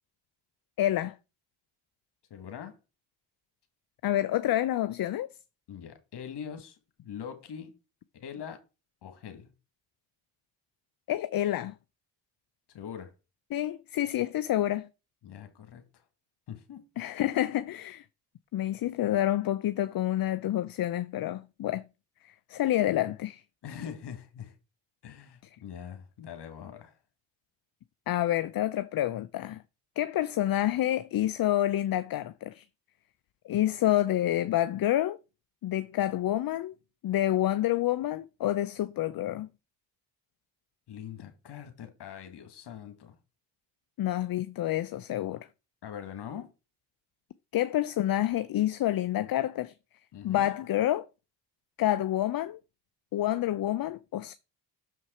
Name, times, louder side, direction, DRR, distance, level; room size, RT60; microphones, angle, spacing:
voice 1, 0.8-1.2 4.0-5.3 11.1-11.7 13.5-14.9 17.0-18.0 18.5-21.8 22.2-23.4 28.1-29.6 30.0-32.6 33.4-35.2 35.6-36.7 37.0-39.5 44.0-45.5 47.5-49.7 50.2-51.1 51.8-52.6 53.1-54.3, left 13 dB, 55° left, 0.6 m, -28 dB
voice 2, 2.3-2.8 5.7-7.7 8.1-8.6 9.0-9.5 12.7-13.1 15.2-16.0 16.5-16.8 23.6-24.5 25.0-27.0 40.9-43.2 45.8-46.5 50.1-50.5, left 8 dB, 75° left, 1.7 m, -43 dB
6.7 x 4.6 x 4.2 m
cardioid pair, 70°, 41 cm